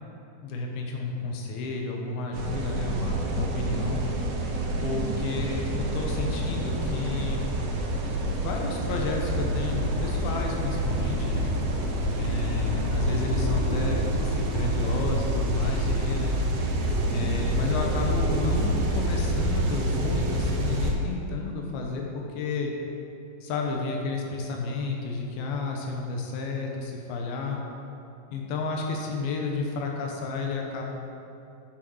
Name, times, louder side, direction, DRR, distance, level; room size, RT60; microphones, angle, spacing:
voice 1, 0.4-4.0 4.8-7.5 8.4-11.5 12.2-16.3 17.1-22.7 23.4-27.6 28.3-30.8, left 3 dB, 85° left, 0 dB, 2.9 m, -31 dB
sound 1, 2.3-20.9, right 1 dB, 85° right, 3.0 m, -27 dB
sound 2, 9.7-15.8, equal, 45° right, 2.2 m, -44 dB
10.0 x 6.4 x 4.7 m, 2.7 s
omnidirectional pair, 4.3 m